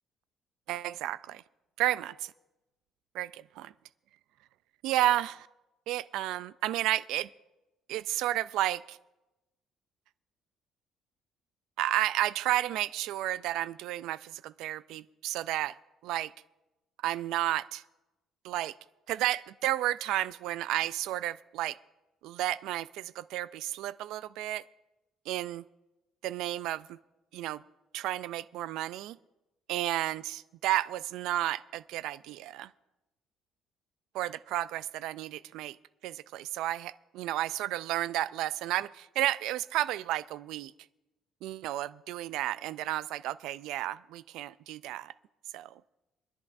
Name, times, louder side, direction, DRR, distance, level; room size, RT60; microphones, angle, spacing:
voice 1, 0.7-1.4 1.8-2.3 3.1-3.7 4.8-5.5 5.9-7.3 7.9-9.0 11.8-15.7 16.0-16.3 17.0-17.8 18.4-18.7 19.1-21.8 22.2-24.6 25.3-25.6 26.2-27.0 27.3-27.6 27.9-29.2 29.7-32.7 34.1-35.8 36.0-40.7 41.4-45.1 45.5-45.7, right 14 dB, 75° right, 16 dB, 0.3 m, -32 dB
26.5 x 10.5 x 2.6 m, 1.0 s
cardioid pair, 175°, 0 cm